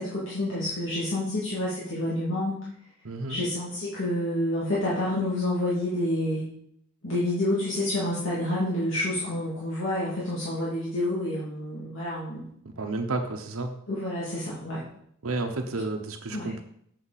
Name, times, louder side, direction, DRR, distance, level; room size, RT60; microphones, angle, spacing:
voice 1, 0.0-2.6 3.3-6.4 7.0-12.5 13.9-14.8 16.3-16.5, left 1 dB, 65° left, -8 dB, 2.4 m, -28 dB
voice 2, 3.0-3.4 12.6-13.7 15.2-16.6, right 2 dB, 90° right, 4 dB, 0.9 m, -31 dB
8.0 x 6.6 x 4.1 m, 0.70 s
head